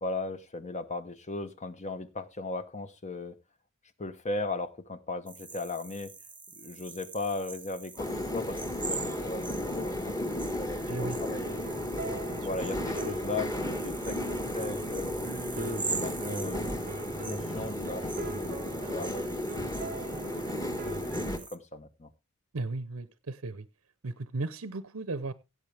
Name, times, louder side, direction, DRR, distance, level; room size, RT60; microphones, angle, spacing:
voice 1, 0.0-3.4 4.0-6.1 6.5-11.6 12.3-15.3 15.6-18.1 18.4-19.5 20.2-22.1, left 2 dB, 35° left, 1.1 m, -37 dB
sound 1, 5.3-21.6, right 4 dB, 10° right, 1.0 m, -43 dB
sound 2, 8.0-21.4, left 1 dB, 15° left, 1.6 m, -34 dB
voice 2, 10.9-11.2 12.3-12.5 22.5-23.7 24.0-25.3, right 3 dB, 85° right, 0.8 m, -35 dB
sound 3, 11.0-21.4, right 4 dB, 45° right, 0.6 m, -42 dB
17.0 x 8.0 x 3.4 m
head